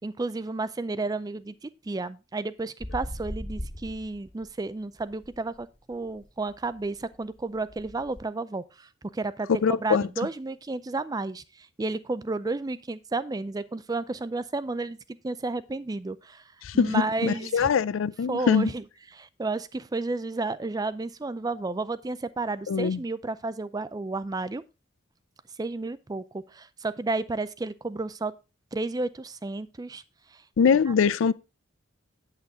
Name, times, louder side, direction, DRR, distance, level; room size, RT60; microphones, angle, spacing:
voice 1, 0.0-9.5 9.8-15.0 15.2-16.4 16.7-17.7 18.3-18.8 19.1-24.6 25.6-28.3 28.7-30.0 30.3-30.4 30.9-31.0, right 3 dB, 20° right, 0.4 m, -32 dB
sound 1, 2.8-4.6 5.0-8.2, equal, 30° left, 1.7 m, -40 dB
voice 2, 9.5-10.1 16.6-18.7 22.7-23.0 30.6-31.3, left 6 dB, 80° left, 0.4 m, -23 dB
8.2 x 8.0 x 3.6 m
head